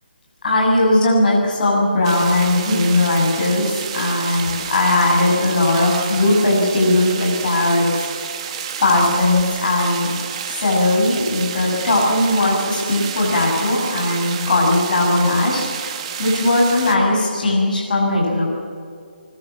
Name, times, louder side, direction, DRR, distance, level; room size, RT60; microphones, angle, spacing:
voice 1, 0.4-8.1 8.8-10.1 10.5-18.5, left 2 dB, 50° left, -3 dB, 7.5 m, -18 dB
sound 1, 2.0-17.0, right 8 dB, 30° right, 1.8 m, -30 dB
24.0 x 22.0 x 7.5 m, 2.3 s
hypercardioid pair, 165°, 6 cm